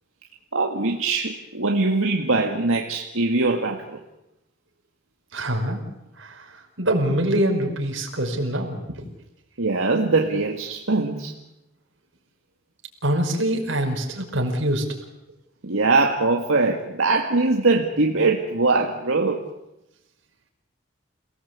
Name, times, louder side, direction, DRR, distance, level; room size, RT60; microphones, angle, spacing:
voice 1, 0.5-4.0 9.6-11.3 15.6-19.4, right 3 dB, 90° right, 2 dB, 2.1 m, -22 dB
voice 2, 5.3-5.8 6.2-6.5 6.8-8.8 13.0-14.8, right 1 dB, 70° right, 2 dB, 5.5 m, -24 dB
29.0 x 18.5 x 8.4 m, 0.91 s
head